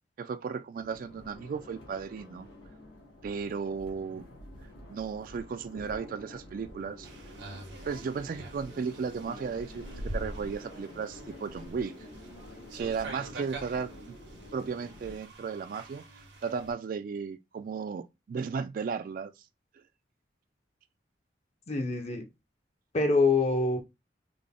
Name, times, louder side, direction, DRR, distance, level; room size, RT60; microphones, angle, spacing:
voice 1, 0.2-2.5 3.2-4.3 4.9-7.1 7.8-11.9 12.7-14.2 14.5-16.0 16.4-19.3, right 5 dB, 50° right, 0.3 m, -35 dB
sound 1, 0.7-15.2, left 1 dB, 85° left, 1.5 m, -48 dB
sound 2, 7.0-16.7, right 1 dB, 85° right, 1.1 m, -44 dB
voice 2, 21.7-22.2 22.9-23.8, left 3 dB, 35° left, 0.6 m, -25 dB
3.7 x 2.1 x 3.5 m
head